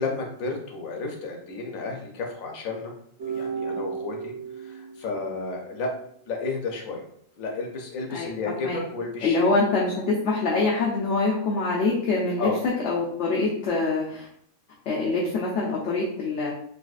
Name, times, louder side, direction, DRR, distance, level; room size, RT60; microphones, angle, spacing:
voice 1, 0.0-2.9 3.3-5.9 6.3-7.0 7.4-9.4 12.4-12.6, left 3 dB, 85° left, 1 dB, 1.1 m, -32 dB
sound 1, 3.2-6.4, right 6 dB, 65° right, 1.0 m, -35 dB
voice 2, 9.2-9.9 10.2-14.3 14.9-16.5, left 3 dB, 65° left, -4 dB, 0.9 m, -24 dB
3.9 x 2.3 x 2.4 m, 0.66 s
omnidirectional pair, 1.4 m